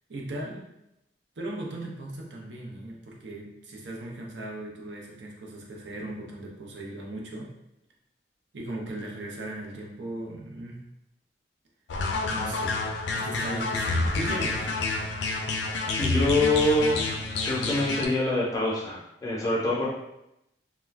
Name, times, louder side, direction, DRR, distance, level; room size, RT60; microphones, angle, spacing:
voice 1, 0.1-0.6 1.4-7.5 8.5-10.8 12.3-12.8 13.1-14.7, right 1 dB, 80° right, -2 dB, 0.6 m, -37 dB
sound 1, 11.9-18.1, left 3 dB, 75° left, 0.4 m, -28 dB
voice 2, 16.0-17.0 17.4-19.9, left 2 dB, 20° left, -5 dB, 0.5 m, -25 dB
2.3 x 2.1 x 3.2 m, 0.86 s
head